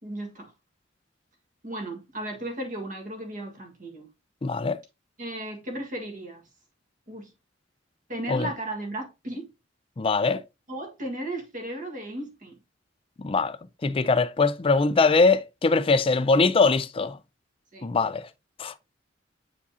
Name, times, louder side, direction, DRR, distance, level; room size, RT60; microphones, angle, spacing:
voice 1, 0.0-0.5 1.6-4.1 5.2-6.4 7.1-7.3 8.1-9.5 10.7-12.6 17.7-17.9, right 1 dB, 45° right, 1.7 m, -35 dB
voice 2, 4.4-4.8 8.3-8.5 10.0-10.4 13.2-13.6 13.8-17.2 17.8-18.3 18.6-18.7, left 4 dB, 30° left, 0.4 m, -22 dB
8.2 x 4.7 x 2.8 m
head